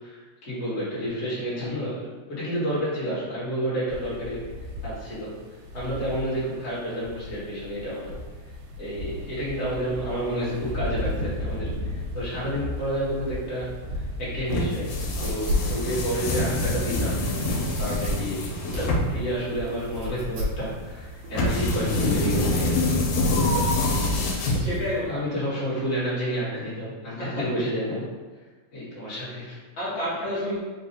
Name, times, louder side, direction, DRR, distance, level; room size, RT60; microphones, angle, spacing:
voice 1, 0.0-4.5 4.8-5.4 5.7-8.2 8.8-22.8 23.5-23.9 25.1-28.1 28.7-29.6, equal, 35° left, -8 dB, 1.4 m, -30 dB
sound 1, 3.9-21.6, left 1 dB, 85° right, 2.0 m, -37 dB
sound 2, 14.5-25.1, left 1 dB, 80° left, 2.1 m, -26 dB
sound 3, 14.9-22.1, equal, 65° right, 1.7 m, -33 dB
voice 2, 24.4-25.1 27.2-27.4 29.8-30.6, left 1 dB, 55° left, -9 dB, 1.4 m, -30 dB
4.7 x 2.4 x 4.1 m, 1.3 s
omnidirectional pair, 3.4 m